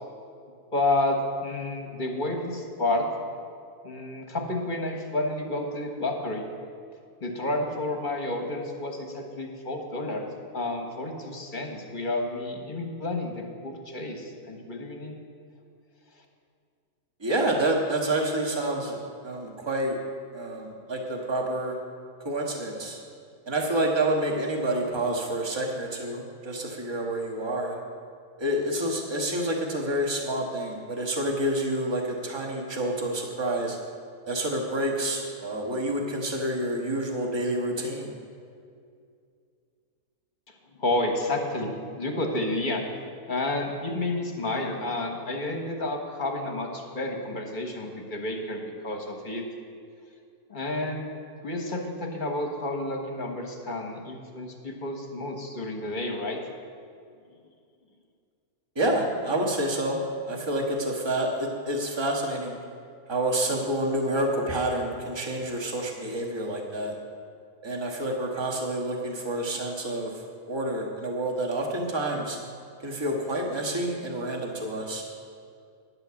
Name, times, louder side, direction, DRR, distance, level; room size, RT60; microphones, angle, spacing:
voice 1, 0.7-3.1 3.8-6.4 7.2-10.3 10.5-15.1 40.8-42.8 43.3-49.4 50.5-51.1 51.4-56.4, left 2 dB, 35° left, 2 dB, 1.3 m, -30 dB
voice 2, 17.2-19.0 19.2-20.0 20.3-21.7 22.2-23.0 23.5-27.8 28.4-33.8 34.3-38.1 58.7-60.0 60.3-62.6 63.1-66.9 67.6-72.4 72.8-75.0, right 1 dB, 20° right, 0 dB, 1.3 m, -28 dB
10.5 x 7.8 x 7.0 m, 2.3 s
omnidirectional pair, 1.6 m